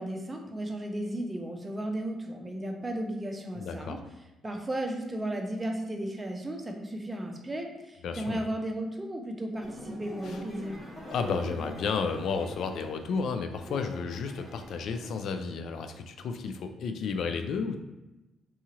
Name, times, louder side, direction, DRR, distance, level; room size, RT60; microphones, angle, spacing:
voice 1, 0.0-4.0 4.4-10.8, right 1 dB, 20° right, 3 dB, 0.5 m, -34 dB
voice 2, 3.6-4.0 8.0-8.4 10.2-10.4 11.1-17.7, left 5 dB, 70° left, 7 dB, 0.3 m, -32 dB
sound 1, 9.6-15.1, equal, 15° left, 0.9 m, -44 dB
2.7 x 2.4 x 2.8 m, 1.0 s
cardioid pair, 90°, 0 cm